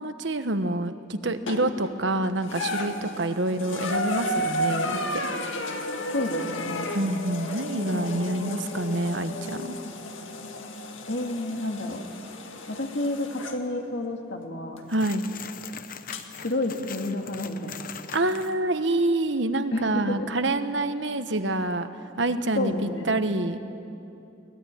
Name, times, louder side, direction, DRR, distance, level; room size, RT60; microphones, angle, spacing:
voice 1, 0.0-5.3 6.9-9.7 14.9-15.3 18.1-21.9 22.2-23.6, right 2 dB, 70° right, 9 dB, 1.2 m, -27 dB
sound 1, 1.5-1.9 2.4-13.6 14.8-14.9 16.1-16.2, left 1 dB, 85° left, 1.9 m, -33 dB
voice 2, 6.1-6.9 7.9-8.7 11.1-12.0 12.7-14.8 16.4-17.9 19.7-20.3 22.6-23.1, left 2 dB, 65° left, 3 dB, 2.3 m, -30 dB
sound 2, 14.9-18.5, left 7 dB, 45° left, 0.9 m, -41 dB
22.5 x 20.0 x 9.2 m, 2.7 s
head